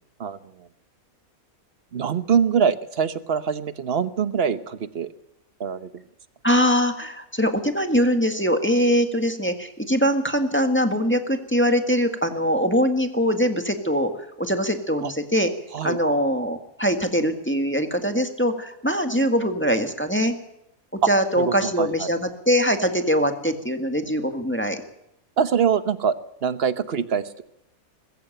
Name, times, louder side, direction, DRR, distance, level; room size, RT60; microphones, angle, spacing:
voice 1, 0.2-0.7 1.9-5.1 5.6-5.9 15.0-15.1 15.7-16.0 21.0-21.1 21.4-22.1 25.4-26.1 26.4-27.4, right 7 dB, 45° right, 13 dB, 1.1 m, -24 dB
voice 2, 6.4-14.1 14.4-15.5 15.8-20.4 21.1-24.8, equal, 10° left, 6 dB, 1.7 m, -22 dB
20.5 x 15.0 x 9.0 m, 0.81 s
omnidirectional pair, 1.5 m